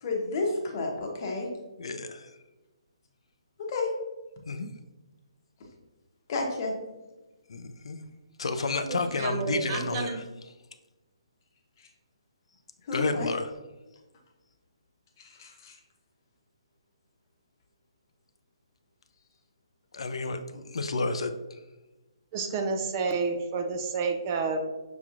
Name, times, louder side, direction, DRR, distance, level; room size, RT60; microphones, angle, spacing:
voice 1, 0.0-1.5 3.6-3.9 6.3-6.7 12.9-13.3 15.2-15.7, left 3 dB, 40° left, 1 dB, 0.9 m, -31 dB
voice 2, 1.8-2.3 4.5-4.7 7.5-8.0 8.4-10.2 12.9-13.5 19.9-21.3, left 3 dB, 75° left, 8 dB, 0.4 m, -31 dB
voice 3, 8.5-10.2 22.3-24.6, right 4 dB, 30° right, 4 dB, 0.5 m, -30 dB
5.9 x 2.9 x 2.4 m, 1.1 s
hypercardioid pair, 155°, 3 cm